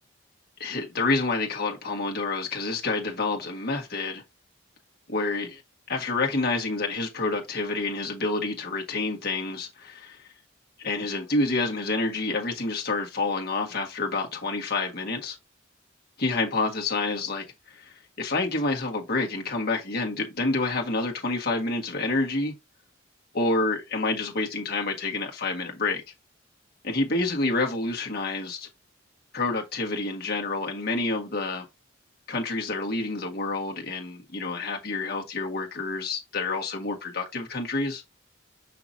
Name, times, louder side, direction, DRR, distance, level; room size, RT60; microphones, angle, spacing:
voice 1, 0.6-4.2 5.1-5.6 5.9-10.3 10.8-15.4 16.2-22.5 23.3-26.0 26.8-28.7 29.3-31.7 32.3-38.1, left 3 dB, 50° left, 1.7 m, -28 dB
5.9 x 5.9 x 2.7 m
head